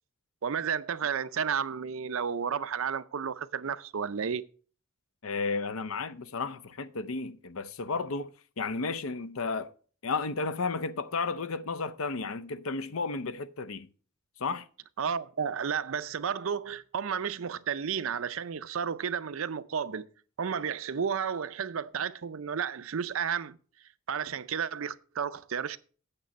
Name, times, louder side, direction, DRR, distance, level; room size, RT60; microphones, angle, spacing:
voice 1, 0.4-4.5 15.0-20.1 20.4-23.6 24.1-25.8, right 7 dB, 65° right, 0.5 m, -32 dB
voice 2, 5.2-9.7 10.0-13.9 14.4-14.6, left 4 dB, 70° left, 0.6 m, -33 dB
8.8 x 6.9 x 5.2 m
head